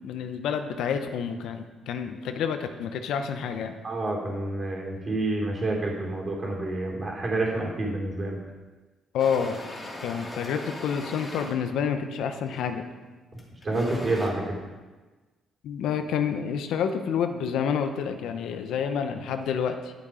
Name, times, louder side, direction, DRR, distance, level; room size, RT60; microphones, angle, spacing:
voice 1, 0.0-3.8 9.1-9.6 10.0-12.8 15.6-19.9, left 7 dB, 80° left, 7 dB, 0.8 m, -28 dB
voice 2, 3.8-8.4 13.6-14.6, right 2 dB, 40° right, -2 dB, 3.3 m, -28 dB
sound 1, 9.2-11.6 12.5-12.7 13.4-14.3, left 1 dB, 25° left, 2.6 m, -39 dB
10.5 x 7.3 x 5.0 m, 1.3 s
cardioid pair, 90°, 0 cm